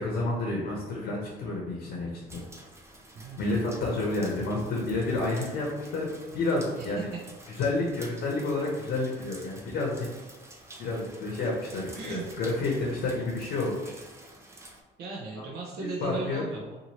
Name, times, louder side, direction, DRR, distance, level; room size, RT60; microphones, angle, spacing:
voice 1, 0.0-2.4 3.3-7.1 7.5-10.1 10.8-14.0 15.3-15.4 15.8-16.4, left 2 dB, 65° left, -2 dB, 0.7 m, -30 dB
sound 1, 2.3-14.8, right 1 dB, 15° right, 0.5 m, -50 dB
voice 2, 3.2-3.5 7.0-7.1 12.0-12.3 15.0-16.8, right 4 dB, 70° right, -2 dB, 0.6 m, -36 dB
2.7 x 2.5 x 2.9 m, 1.2 s
cardioid pair, 110°, 17 cm